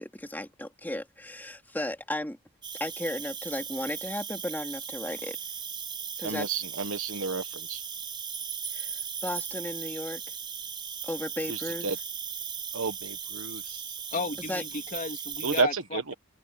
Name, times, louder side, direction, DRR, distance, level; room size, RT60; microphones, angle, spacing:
voice 1, 0.0-2.4 2.8-5.4 6.2-6.6 8.7-10.2 11.0-11.9 14.5-14.6, left 1 dB, 10° left, 2.7 m, -35 dB
Cricket, 2.6-15.6, right 7 dB, 20° right, 3.5 m, -37 dB
voice 2, 6.2-7.8 11.5-12.0 12.7-13.8 15.4-16.1, right 4 dB, 65° right, 1.4 m, -31 dB
voice 3, 14.1-16.1, left 3 dB, 35° left, 2.6 m, -34 dB
open air
head